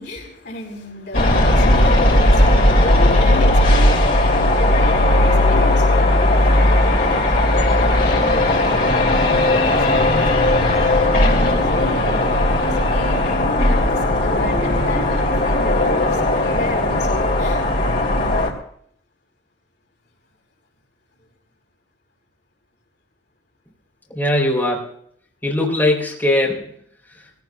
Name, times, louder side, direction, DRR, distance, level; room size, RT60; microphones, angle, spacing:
voice 1, 0.0-17.6, left 1 dB, 65° left, 0 dB, 4.4 m, -32 dB
sound 1, 1.1-18.5, left 1 dB, 50° left, 2.8 m, -16 dB
voice 2, 24.1-24.9 25.4-26.7, left 1 dB, 10° left, -3 dB, 3.6 m, -20 dB
21.5 x 16.5 x 2.4 m, 0.65 s
head